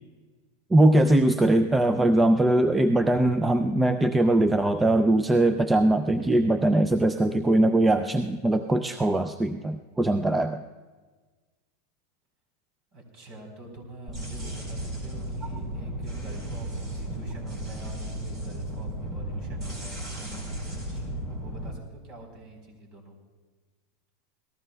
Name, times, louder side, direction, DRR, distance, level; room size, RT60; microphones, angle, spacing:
voice 1, 0.7-10.6, right 1 dB, 10° right, 8 dB, 0.4 m, -21 dB
voice 2, 12.9-23.1, right 1 dB, 40° right, 3 dB, 4.1 m, -46 dB
sound 1, 14.1-21.7, right 1 dB, 25° right, 4.2 m, -34 dB
27.0 x 18.5 x 2.3 m, 1.3 s
supercardioid pair, 160°, 0 cm